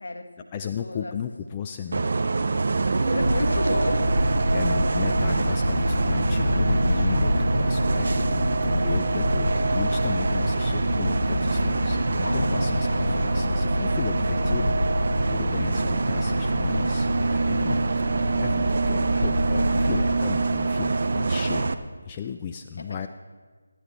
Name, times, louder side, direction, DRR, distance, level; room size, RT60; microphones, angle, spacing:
voice 1, 0.0-0.5 0.8-1.1 3.1-4.2 6.3-6.5 22.8-23.1, left 2 dB, 65° left, 6 dB, 1.5 m, -32 dB
voice 2, 0.5-2.1 4.5-17.9 18.2-21.7 22.1-23.1, left 7 dB, 20° left, 5 dB, 0.4 m, -35 dB
Bus, 1.9-21.7, right 3 dB, 50° right, 0.7 m, -25 dB
sound 1, 3.2-20.1, left 1 dB, 80° left, 1.0 m, -27 dB
25.5 x 10.0 x 3.3 m, 1.4 s
figure-of-eight pair, 160°, 0 cm